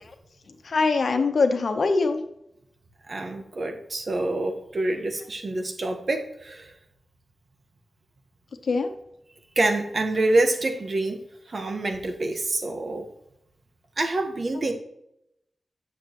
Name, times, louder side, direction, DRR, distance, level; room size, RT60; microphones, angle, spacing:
voice 1, 0.5-2.2 8.6-8.9, left 4 dB, 65° left, 6 dB, 1.0 m, -23 dB
voice 2, 3.1-6.7 9.5-11.2 11.5-13.0 14.0-14.7, right 2 dB, 45° right, 5 dB, 1.3 m, -26 dB
9.1 x 7.1 x 3.1 m, 0.80 s
wide cardioid pair, 95°, 0 cm